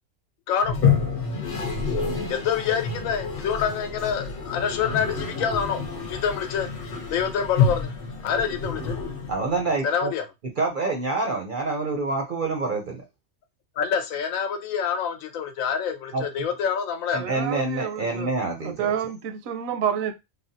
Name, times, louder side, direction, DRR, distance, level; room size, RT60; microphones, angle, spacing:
voice 1, 0.5-0.8 2.3-5.8 6.1-6.7 7.1-7.9 8.2-8.9 9.8-10.2 13.8-17.2, left 7 dB, 75° left, 1.0 m, -26 dB
Toilet flush, 0.6-9.7, left 5 dB, 50° left, 0.9 m, -28 dB
voice 2, 9.3-10.1 10.6-13.0 16.1-16.2 17.1-18.9, right 3 dB, 55° right, 0.6 m, -27 dB
voice 3, 17.2-18.3 18.6-20.1, right 8 dB, 80° right, 1.0 m, -29 dB
3.4 x 2.1 x 2.7 m
omnidirectional pair, 1.4 m